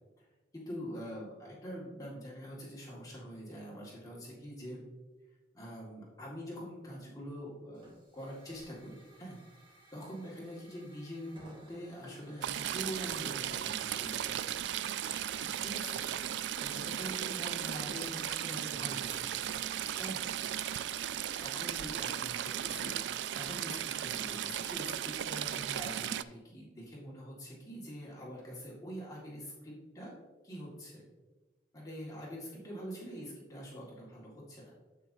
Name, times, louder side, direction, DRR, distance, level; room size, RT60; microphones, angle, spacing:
voice 1, 0.5-4.8 5.5-9.4 9.9-14.4 15.4-19.4 20.0-20.2 21.4-30.1 30.4-31.0 31.7-34.7, equal, 20° left, -5 dB, 1.9 m, -44 dB
Hiss / Fire, 7.7-25.1, right 1 dB, 30° right, 2.3 m, -60 dB
Stream / Trickle dribble, 12.4-26.2, right 10 dB, 85° right, 0.3 m, -36 dB
9.2 x 7.8 x 2.7 m, 1.2 s
head